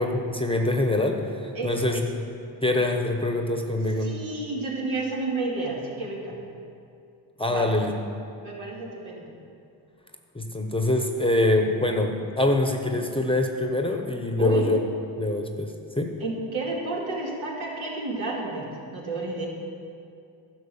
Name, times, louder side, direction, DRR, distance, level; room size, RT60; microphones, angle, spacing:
voice 1, 0.0-2.2 2.6-4.1 7.4-7.9 10.3-14.8 15.2-16.1, left 2 dB, 10° left, 4 dB, 1.0 m, -24 dB
voice 2, 1.5-2.0 4.0-6.4 7.5-7.7 8.4-9.3 14.4-14.7 16.2-19.5, right 2 dB, 70° right, -3 dB, 2.5 m, -31 dB
11.0 x 6.0 x 7.2 m, 2.5 s
supercardioid pair, 65°, 49 cm